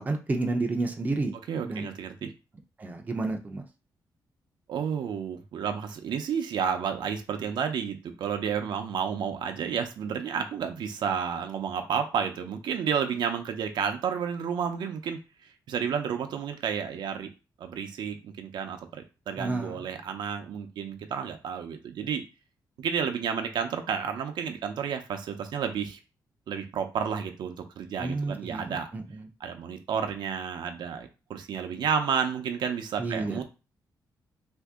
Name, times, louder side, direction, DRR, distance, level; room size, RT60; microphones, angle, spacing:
voice 1, 0.0-1.3 1.6-1.9 2.8-3.6 19.4-19.8 28.0-29.3 33.0-33.4, right 3 dB, 20° right, 4 dB, 0.5 m, -30 dB
voice 2, 1.5-2.3 4.7-17.3 17.6-22.2 22.8-26.0 26.5-28.9 29.4-33.4, right 7 dB, 75° right, 6 dB, 0.6 m, -31 dB
2.9 x 2.6 x 3.5 m, 0.30 s
wide cardioid pair, 150°, 8 cm